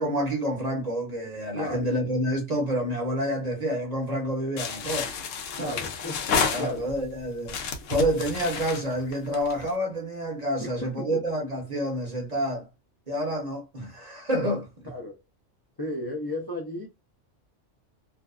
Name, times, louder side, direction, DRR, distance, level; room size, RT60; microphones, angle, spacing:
voice 1, 0.0-5.1 5.6-5.8 6.5-7.6 7.9-12.7 13.1-14.9, equal, 40° right, 0.7 m, -28 dB
voice 2, 1.5-1.9 5.5-6.3 6.6-6.9 10.6-11.2 14.9-15.2 15.8-16.9, left 1 dB, 40° left, 0.3 m, -34 dB
sound 1, 4.6-7.1 7.5-9.7, left 5 dB, 85° left, 0.9 m, -30 dB
2.6 x 2.2 x 2.3 m
omnidirectional pair, 1.3 m